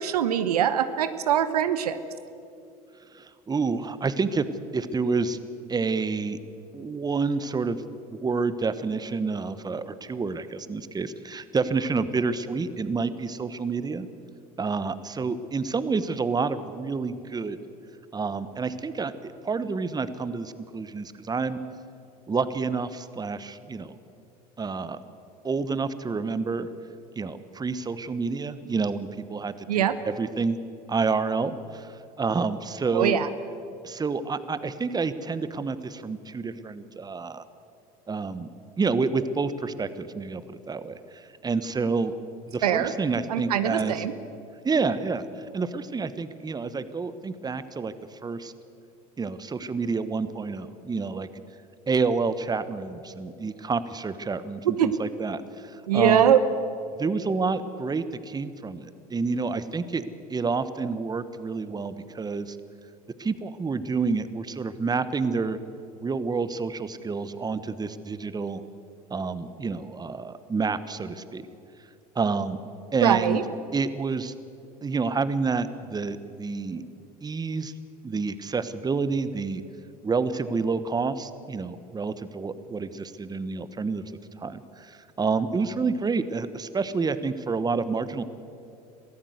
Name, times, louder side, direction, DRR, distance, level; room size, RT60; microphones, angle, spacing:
voice 1, 0.0-2.0 29.7-29.9 32.9-33.3 42.6-42.9 43.3-44.1 54.8-54.9 55.9-56.4 73.0-73.4, right 10 dB, 90° right, 12 dB, 1.0 m, -22 dB
voice 2, 3.1-4.4 4.7-5.4 5.7-6.4 6.7-7.8 8.1-14.1 14.6-17.6 18.1-21.6 22.3-23.9 24.6-25.0 25.4-26.7 27.2-30.6 30.9-33.2 33.8-37.4 38.1-38.5 38.8-42.1 42.5-44.0 44.6-45.2 45.5-47.9 48.2-48.5 49.2-51.3 51.9-56.3 57.0-60.0 60.3-62.6 63.2-65.6 66.0-68.6 69.1-71.5 72.1-72.6 72.9-73.4 73.7-74.3 74.8-76.8 77.2-77.7 78.0-79.6 80.0-84.0 84.4-88.2, right 4 dB, 20° right, 13 dB, 1.2 m, -28 dB
23.0 x 15.0 x 8.1 m, 2.6 s
hypercardioid pair, 80°, 19 cm